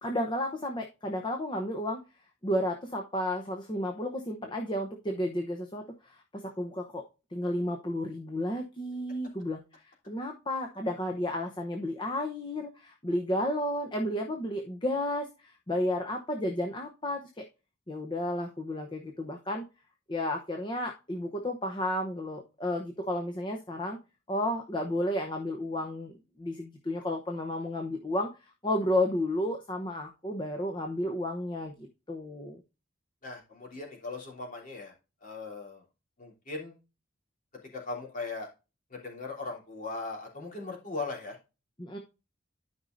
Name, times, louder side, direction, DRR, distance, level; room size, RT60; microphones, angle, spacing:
voice 1, 0.0-2.0 2.4-7.0 7.3-9.6 10.1-17.4 17.9-19.6 20.1-24.0 24.3-32.6 41.8-42.0, left 1 dB, 25° left, 3 dB, 0.8 m, -32 dB
voice 2, 33.2-34.9 35.2-35.8 36.2-36.7 37.7-38.5 38.9-41.4, left 3 dB, 40° left, -2 dB, 3.3 m, -38 dB
12.0 x 5.4 x 2.6 m, 0.29 s
head